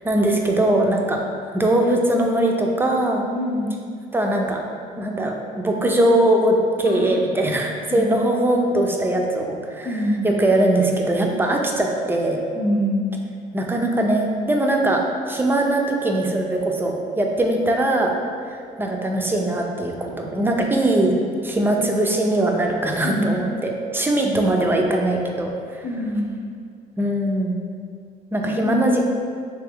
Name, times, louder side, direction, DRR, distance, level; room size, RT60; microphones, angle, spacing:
voice 1, 0.0-1.2 1.5-3.3 4.1-4.6 5.0-9.9 10.2-12.4 13.5-15.0 15.3-18.1 18.5-21.1 21.4-25.8 27.0-27.6 28.3-29.0, right 1 dB, 10° right, 1 dB, 0.4 m, -21 dB
voice 2, 3.3-3.7 6.8-7.4 7.9-8.1 9.8-10.3 12.5-13.2 23.0-23.3 24.2-24.5 25.8-26.4 28.4-29.0, equal, 55° left, -4 dB, 0.7 m, -25 dB
3.4 x 3.2 x 3.5 m, 2.2 s
cardioid pair, 110°, 17 cm